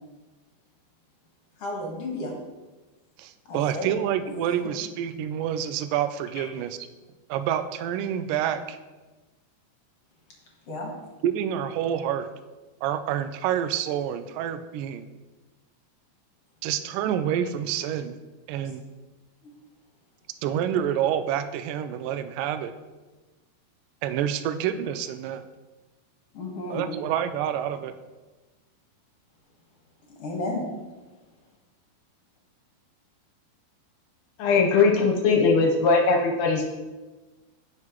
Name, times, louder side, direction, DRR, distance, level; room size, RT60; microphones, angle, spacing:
voice 1, 1.6-2.3 3.5-3.9 6.4-6.5 10.7-10.9 19.4-19.5 26.3-26.9 30.2-30.7, left 2 dB, 50° left, -2 dB, 2.1 m, -32 dB
voice 2, 3.2-6.8 7.3-8.8 11.2-12.3 12.8-15.1 16.6-18.2 18.5-18.8 20.4-22.7 24.0-25.4 26.7-27.9, right 9 dB, 85° right, 9 dB, 1.9 m, -28 dB
voice 3, 34.4-36.7, left 4 dB, 65° left, 1 dB, 2.3 m, -20 dB
16.0 x 5.9 x 3.1 m, 1.2 s
omnidirectional pair, 4.4 m